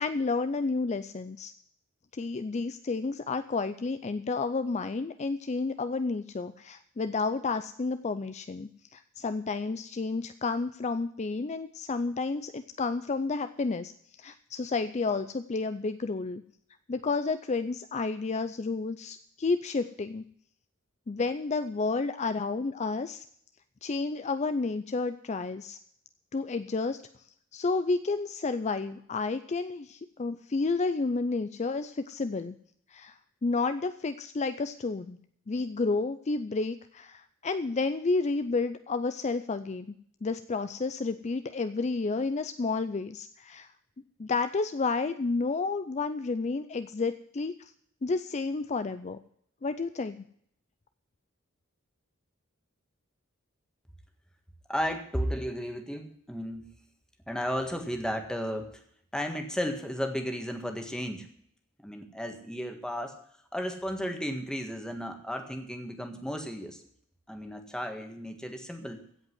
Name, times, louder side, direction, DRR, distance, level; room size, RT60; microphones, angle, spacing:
voice 1, 0.0-1.5 2.1-16.4 16.9-20.2 21.1-23.2 23.8-25.8 26.3-27.0 27.5-32.5 32.9-33.1 33.4-35.2 35.5-39.9 40.2-43.7 44.2-47.7 48.0-49.2 49.6-50.2, left 3 dB, 35° left, 11 dB, 0.4 m, -31 dB
voice 2, 54.7-56.7 57.3-58.7 59.1-61.3 61.8-63.1 63.5-66.8 67.3-69.0, equal, 5° left, 5 dB, 1.6 m, -34 dB
16.0 x 5.4 x 9.5 m, 0.66 s
head